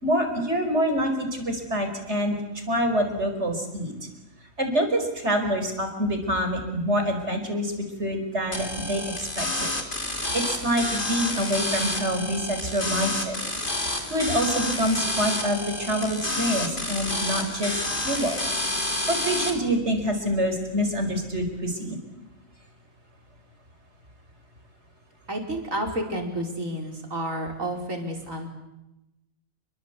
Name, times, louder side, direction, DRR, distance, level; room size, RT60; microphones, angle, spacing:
voice 1, 0.0-2.4 2.7-3.9 4.6-7.7 8.0-9.7 10.3-13.4 14.1-18.4 19.1-22.0, equal, 55° right, 6 dB, 5.4 m, -26 dB
sound 1, 8.5-19.5, left 1 dB, 35° left, 3.7 m, -29 dB
voice 2, 25.3-28.5, right 1 dB, 70° right, 2 dB, 5.4 m, -30 dB
29.5 x 22.5 x 8.3 m, 0.93 s
omnidirectional pair, 1.4 m